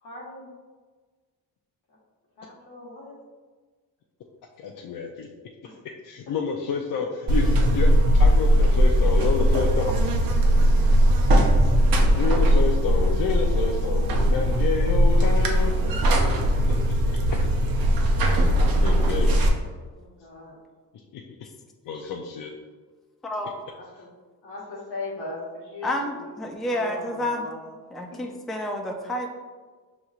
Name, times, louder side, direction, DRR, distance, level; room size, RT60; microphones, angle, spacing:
voice 1, 0.0-0.5 2.4-3.2 5.6-5.7 8.4-8.6 11.2-11.8 17.8-17.9 18.3-18.7 20.0-20.5 23.7-24.1 24.4-26.4 26.7-27.7 28.1-28.2, left 2 dB, 85° left, -4 dB, 1.3 m, -40 dB
voice 2, 4.6-5.3 6.0-9.9 12.1-15.7 16.6-16.7 18.5-19.4 21.1-21.2 21.8-22.5, left 5 dB, 60° left, 1 dB, 0.5 m, -29 dB
Buzz, 7.3-19.5, equal, 65° right, 0.7 m, -19 dB
voice 3, 23.2-23.5 25.8-27.5 27.9-29.3, left 1 dB, ahead, 2 dB, 0.3 m, -29 dB
5.2 x 3.0 x 2.4 m, 1.4 s
cardioid pair, 95°, 37 cm